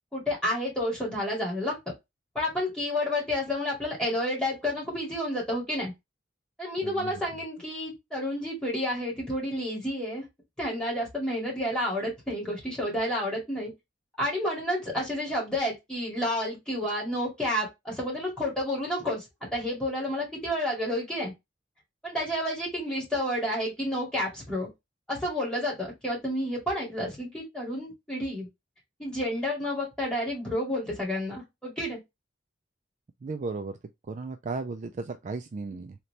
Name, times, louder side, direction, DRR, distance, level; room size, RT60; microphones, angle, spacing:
voice 1, 0.1-1.8 2.3-5.9 6.6-10.2 10.6-13.7 14.2-19.2 19.5-21.3 22.0-24.7 25.1-28.5 29.0-32.0, left 1 dB, 5° left, 2.2 m, -30 dB
voice 2, 33.2-33.8 34.1-36.0, right 3 dB, 40° right, 0.3 m, -35 dB
3.9 x 2.9 x 3.2 m
head